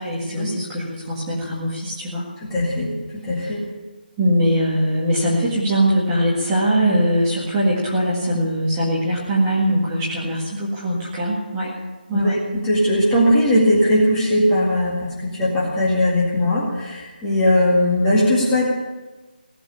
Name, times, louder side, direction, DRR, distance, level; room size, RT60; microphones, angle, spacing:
voice 1, 0.0-2.3 3.4-3.5 4.2-11.7 12.1-12.4, equal, 10° right, -6 dB, 1.9 m, -21 dB
voice 2, 2.4-3.6 12.2-18.7, left 1 dB, 5° left, -6 dB, 2.1 m, -19 dB
18.0 x 8.0 x 9.9 m, 1.2 s
figure-of-eight pair, 175°, 5 cm